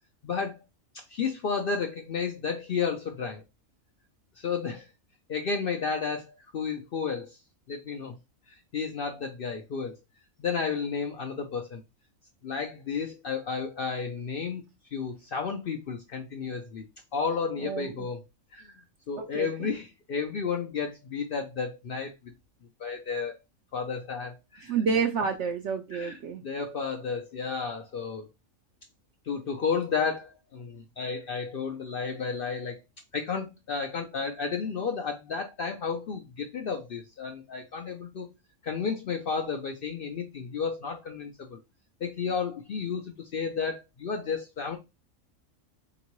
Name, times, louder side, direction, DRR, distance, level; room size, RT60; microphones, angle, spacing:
voice 1, 0.2-0.6 0.9-3.4 4.4-4.9 5.3-7.4 7.7-8.2 8.7-10.0 10.4-11.8 12.4-14.6 14.9-16.8 17.1-18.2 18.5-18.7 19.1-22.1 22.8-23.4 23.7-24.7 25.9-26.2 26.4-28.3 29.3-32.8 33.1-38.3 38.6-41.6 42.0-44.8, left 5 dB, 60° left, 0.6 m, -32 dB
voice 2, 17.6-18.0 19.2-19.7 24.6-26.4, right 6 dB, 65° right, 0.8 m, -29 dB
3.6 x 2.9 x 3.0 m
omnidirectional pair, 1.4 m